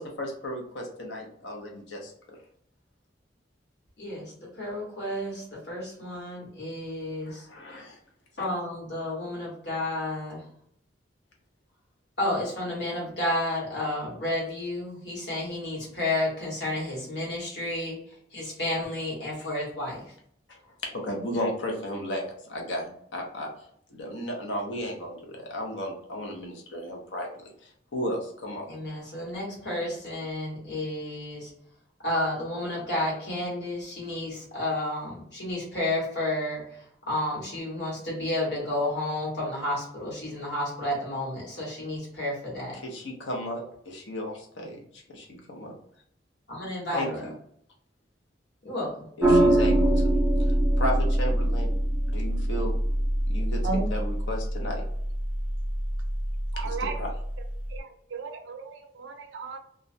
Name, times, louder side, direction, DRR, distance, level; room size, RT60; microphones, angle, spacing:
voice 1, 0.0-2.4 7.2-8.0 8.4-8.5 20.5-23.5 23.9-28.7 42.7-45.7 46.9-47.3 49.2-50.1 50.4-51.7 52.1-52.8 53.3-54.8 56.6-57.1, equal, 85° left, 1 dB, 0.7 m, -34 dB
voice 2, 4.0-7.5 8.4-10.4 12.2-18.0 18.3-20.1 28.6-31.5 32.0-42.8 46.5-47.3 48.6-49.1, left 1 dB, 65° left, -4 dB, 1.2 m, -31 dB
sound 1, 49.2-57.8, right 1 dB, 10° right, 0.4 m, -25 dB
voice 3, 56.5-57.0 57.7-59.6, right 4 dB, 85° right, 6 dB, 0.4 m, -34 dB
2.4 x 2.1 x 2.6 m, 0.67 s
head